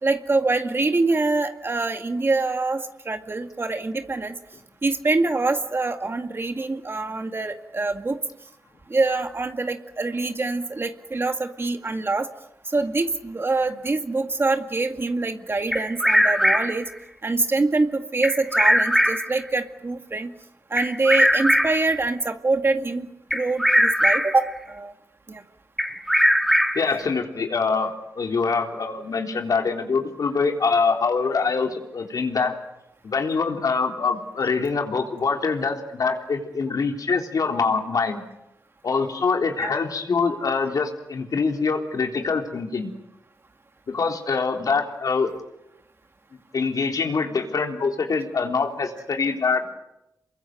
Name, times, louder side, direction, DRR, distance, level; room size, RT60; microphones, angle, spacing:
voice 1, 0.0-4.4 4.8-8.2 8.9-12.3 12.7-16.9 17.2-20.3 20.7-24.9 25.3-25.4 39.6-39.8, right 3 dB, 35° right, 6 dB, 2.0 m, -25 dB
Bird vocalization bird call bird song, 15.7-16.9 18.2-19.3 20.8-21.9 23.3-24.4 25.8-26.9, equal, ahead, 2.4 m, -20 dB
voice 2, 26.8-32.6 33.0-38.2 38.8-42.9 43.9-45.3 46.5-49.7, left 4 dB, 65° left, 3 dB, 3.8 m, -24 dB
28.5 x 23.0 x 7.9 m, 0.87 s
wide cardioid pair, 85°, 7 cm